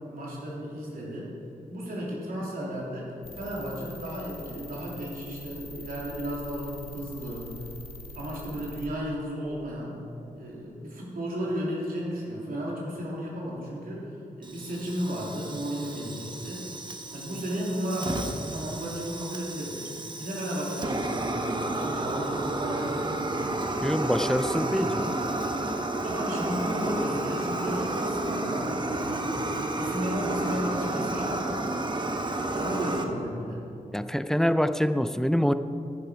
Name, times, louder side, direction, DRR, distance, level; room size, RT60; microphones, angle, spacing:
voice 1, 0.1-1.3 1.7-7.5 8.2-10.0 10.3-16.7 17.1-19.9 20.2-23.6 24.6-24.9 26.0-29.5 29.7-31.8 32.5-33.6, equal, 90° right, -4 dB, 3.3 m, -34 dB
sound 1, 3.2-8.9, left 1 dB, 40° left, 1.5 m, -44 dB
Fire, 14.4-33.0, right 2 dB, 30° right, 1.1 m, -31 dB
voice 2, 23.8-25.1 33.9-35.5, equal, 5° left, 11 dB, 0.5 m, -25 dB
13.5 x 10.5 x 5.2 m, 2.8 s
wide cardioid pair, 90°, 14 cm